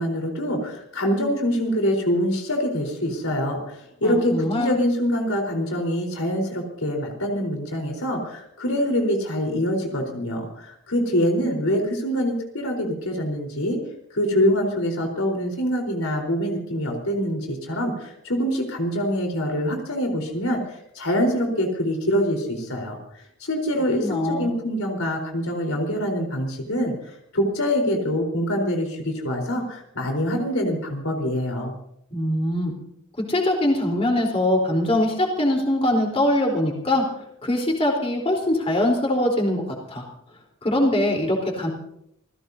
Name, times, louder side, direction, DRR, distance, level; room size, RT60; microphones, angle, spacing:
voice 1, 0.0-13.8 14.1-31.8, equal, 85° left, 2 dB, 4.1 m, -25 dB
voice 2, 4.0-4.8 24.0-24.5 32.1-32.7 33.3-37.0 37.4-39.6 39.9-40.0 40.6-41.7, left 1 dB, 30° left, -1 dB, 3.9 m, -22 dB
28.5 x 16.0 x 2.8 m, 0.73 s
head